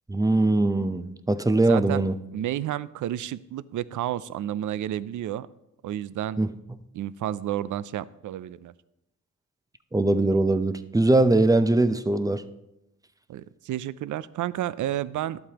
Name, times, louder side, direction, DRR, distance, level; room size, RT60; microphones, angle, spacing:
voice 1, 0.1-2.1 6.4-6.5 9.9-12.4, right 2 dB, 10° right, 12 dB, 0.5 m, -21 dB
voice 2, 1.7-2.0 2.3-5.5 5.8-6.4 6.9-8.7 13.3-15.4, right 12 dB, 60° right, 18 dB, 0.5 m, -31 dB
11.5 x 8.0 x 2.9 m, 0.88 s
cardioid pair, 70°, 35 cm